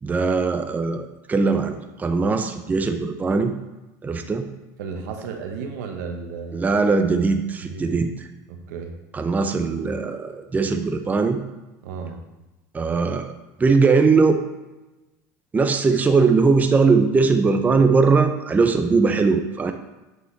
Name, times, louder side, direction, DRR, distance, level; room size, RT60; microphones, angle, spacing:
voice 1, 0.0-3.5 4.0-4.5 6.5-8.1 9.1-11.4 12.7-13.3 13.6-14.4 15.5-19.7, right 4 dB, 15° right, 6 dB, 0.5 m, -20 dB
voice 2, 4.8-6.7 7.6-8.0 8.5-8.9 11.8-12.2, right 5 dB, 85° right, 4 dB, 1.0 m, -33 dB
7.9 x 5.3 x 3.3 m, 1.1 s
supercardioid pair, 110°, 9 cm